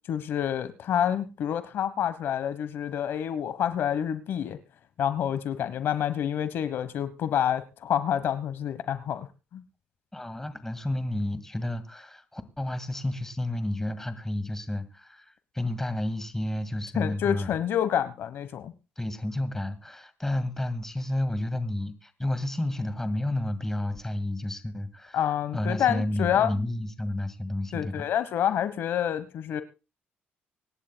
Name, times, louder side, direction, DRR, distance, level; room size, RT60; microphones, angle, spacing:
voice 1, 0.1-4.6 5.0-9.3 9.5-9.6 16.9-18.7 25.1-26.5 27.7-29.6, left 9 dB, 70° left, 14 dB, 1.1 m, -28 dB
voice 2, 10.1-17.5 19.0-25.2 25.5-28.1, left 1 dB, 10° left, 11 dB, 1.9 m, -31 dB
25.0 x 11.5 x 2.2 m, 0.29 s
cardioid pair, 95°, 4 cm